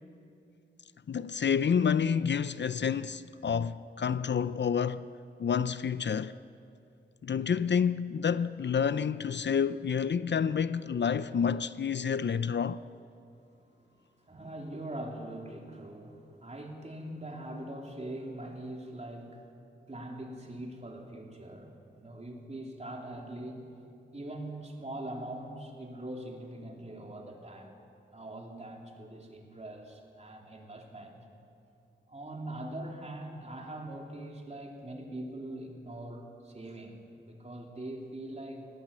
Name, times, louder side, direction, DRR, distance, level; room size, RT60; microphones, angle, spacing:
voice 1, 1.1-5.0 5.4-6.3 7.2-12.8, left 7 dB, 60° left, 0.5 m, -29 dB
voice 2, 14.3-19.4 19.9-23.7 24.1-27.7 28.1-31.2 32.1-38.7, right 1 dB, 35° right, 3.3 m, -42 dB
20.0 x 18.5 x 8.5 m
wide cardioid pair, 100°, 20 cm